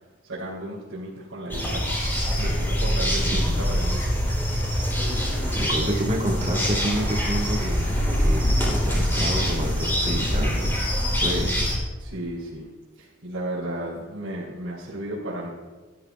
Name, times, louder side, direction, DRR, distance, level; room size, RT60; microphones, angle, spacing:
voice 1, 0.3-2.0 2.4-4.0 12.0-12.7 13.0-15.5, right 1 dB, 80° right, -9 dB, 3.4 m, -34 dB
sound 1, 1.5-11.8, equal, 10° left, 3.1 m, -24 dB
voice 2, 3.2-3.5 5.5-7.9 8.2-10.9 11.2-11.7, equal, 30° right, -2 dB, 1.5 m, -29 dB
18.5 x 12.0 x 2.4 m, 1.3 s
head